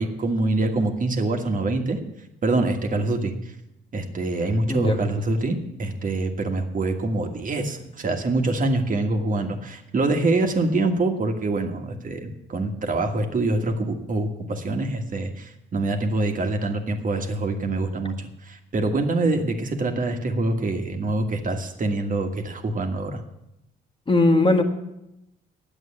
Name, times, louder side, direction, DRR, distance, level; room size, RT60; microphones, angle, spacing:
voice 1, 0.0-2.0 2.4-3.3 3.9-23.2, right 2 dB, 40° right, 4 dB, 1.6 m, -25 dB
voice 2, 24.1-24.6, left 2 dB, 25° left, 5 dB, 1.6 m, -19 dB
9.7 x 8.0 x 8.6 m, 0.87 s
cardioid pair, 90°, 20 cm